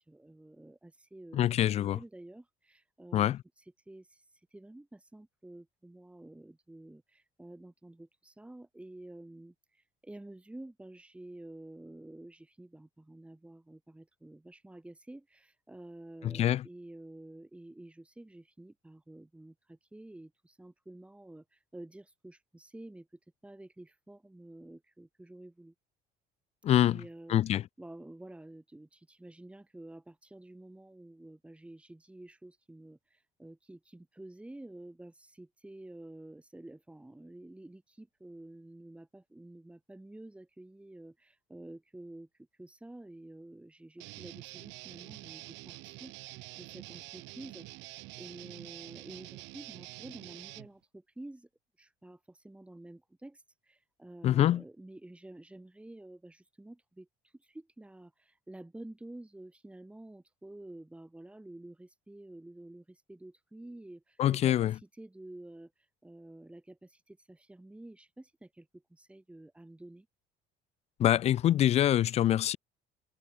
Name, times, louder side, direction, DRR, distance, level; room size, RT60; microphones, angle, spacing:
voice 1, 0.0-25.7 26.8-51.5 51.8-70.1, right 1 dB, 5° right, 4.0 m, -50 dB
voice 2, 1.3-2.0 3.1-3.4 16.2-16.6 26.6-27.0 27.3-27.6 54.2-54.6 64.2-64.7 71.0-72.6, left 12 dB, 35° left, 0.4 m, -25 dB
Guitar, 44.0-50.7, right 23 dB, 75° right, 0.9 m, -47 dB
cardioid pair, 145°, 19 cm